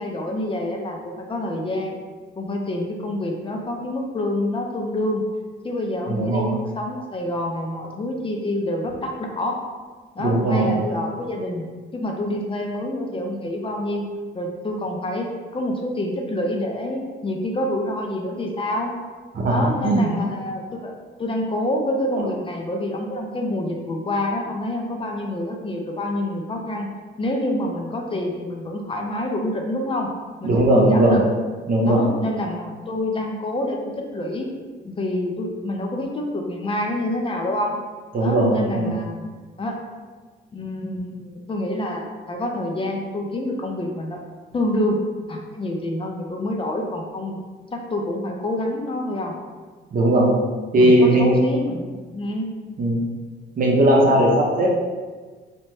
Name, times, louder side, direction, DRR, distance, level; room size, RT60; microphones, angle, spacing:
voice 1, 0.0-2.0 2.4-5.2 5.6-9.6 10.2-11.6 11.9-14.1 14.3-15.3 15.5-18.9 19.5-20.9 21.2-26.9 27.2-30.1 30.4-31.2 31.8-34.5 34.8-37.8 38.2-39.8 40.5-44.2 44.5-45.0 45.3-47.4 47.7-49.3 50.8-52.5, left 1 dB, 25° left, 1 dB, 0.4 m, -27 dB
voice 2, 6.1-6.5 10.2-10.7 19.4-20.1 22.2-22.3 30.4-31.2 31.7-32.0 38.1-38.9 49.9-50.3 50.7-51.3 52.8-53.0 53.6-54.7, right 1 dB, 45° right, -3 dB, 0.7 m, -18 dB
2.8 x 2.1 x 3.1 m, 1.4 s
cardioid pair, 90°, 20 cm